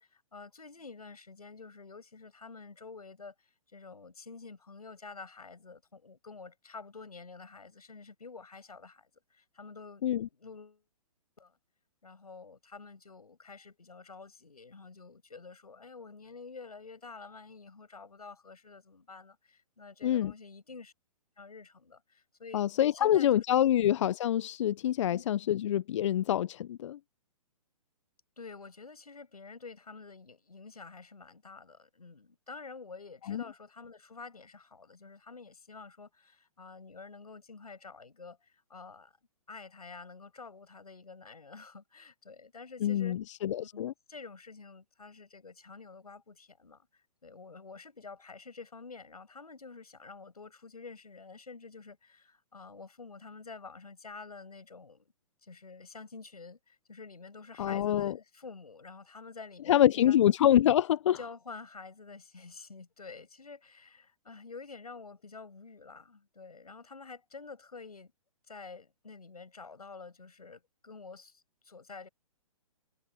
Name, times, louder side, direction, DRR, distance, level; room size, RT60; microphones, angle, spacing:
voice 1, 0.0-10.0 10.4-10.8 11.4-11.5 12.0-20.9 21.4-22.7 23.0-23.4 25.1-25.2 28.4-39.1 39.5-43.2 43.6-43.8 44.1-55.1 55.4-60.2 61.2-68.1 68.5-72.1, left 4 dB, 85° left, 7.4 m, -49 dB
voice 2, 20.0-20.3 22.5-27.0 33.3-33.4 42.8-43.9 57.6-58.2 59.7-61.2, left 11 dB, 55° left, 0.7 m, -26 dB
hypercardioid pair, 125°, 19 cm